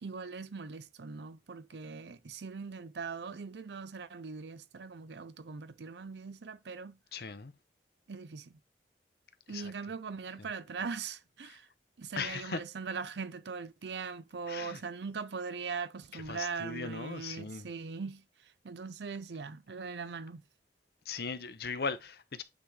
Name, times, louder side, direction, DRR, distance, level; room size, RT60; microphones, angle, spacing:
voice 1, 0.0-7.0 8.1-8.6 9.5-11.7 12.0-18.2 18.6-20.4, right 5 dB, 75° right, 0.6 m, -40 dB
voice 2, 7.1-7.5 9.5-9.7 10.4-10.5 11.4-11.6 12.1-12.6 14.5-14.8 16.1-17.7 21.1-22.4, left 5 dB, 60° left, 0.7 m, -38 dB
8.7 x 3.6 x 3.3 m
head